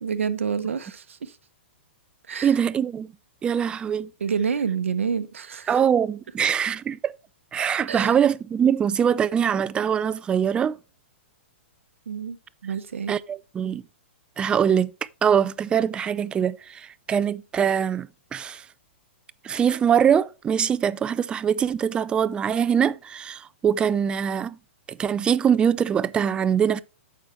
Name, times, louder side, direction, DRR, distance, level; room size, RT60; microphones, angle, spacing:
voice 1, 0.0-1.4 2.3-2.6 4.2-5.8 7.9-8.2 12.1-12.4 12.6-13.2, right 6 dB, 90° right, 0.8 m, -28 dB
voice 2, 2.4-3.1 3.4-4.1 5.7-7.1 7.5-10.8 13.1-13.8 14.4-14.9 15.2-18.6 19.4-24.6 24.9-26.8, right 8 dB, 15° right, 0.3 m, -23 dB
9.0 x 6.1 x 3.0 m
hypercardioid pair, 140°, 7 cm